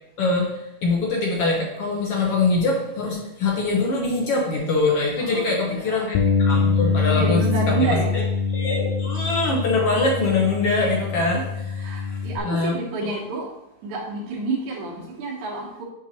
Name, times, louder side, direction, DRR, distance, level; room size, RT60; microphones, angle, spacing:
voice 1, 0.2-7.4 7.8-8.0 8.5-12.7 13.0-13.2, left 3 dB, 65° left, -2 dB, 1.6 m, -23 dB
voice 2, 5.2-6.0 6.8-8.2 11.7-13.5 13.8-15.8, right 3 dB, 75° right, -2 dB, 2.6 m, -29 dB
Bass guitar, 6.1-12.4, left 5 dB, 80° left, 1.9 m, -24 dB
7.4 x 5.4 x 3.0 m, 0.87 s
omnidirectional pair, 3.4 m